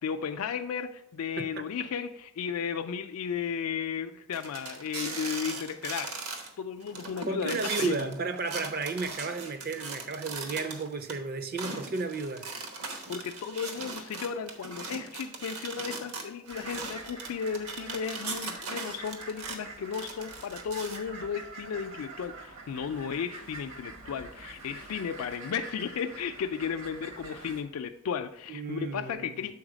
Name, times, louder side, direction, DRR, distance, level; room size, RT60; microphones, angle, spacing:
voice 1, 0.0-6.2 6.6-8.1 13.1-29.6, left 7 dB, 70° left, 0.3 m, -34 dB
sound 1, 4.3-6.5 6.8-11.1 11.6-19.6 19.9-21.0, right 3 dB, 75° right, 1.1 m, -39 dB
voice 2, 7.3-12.5 28.5-29.5, right 4 dB, 45° right, 0.4 m, -33 dB
sound 2, 16.5-27.6, right 2 dB, 60° right, 0.9 m, -46 dB
7.1 x 4.0 x 4.9 m
head